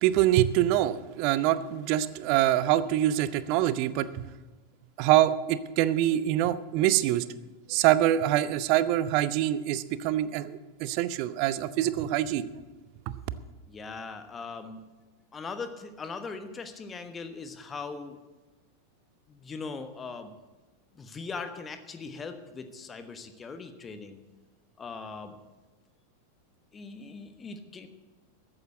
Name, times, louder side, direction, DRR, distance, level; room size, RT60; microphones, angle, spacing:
voice 1, 0.0-4.2 5.0-7.2 7.7-12.5, right 13 dB, 45° right, 16 dB, 0.7 m, -25 dB
voice 2, 13.7-14.9 15.3-18.2 19.3-20.3 20.9-24.2 24.8-25.3 26.7-27.9, left 4 dB, 20° left, 8 dB, 1.2 m, -40 dB
14.0 x 9.0 x 8.3 m, 1.2 s
figure-of-eight pair, 90°, 0 cm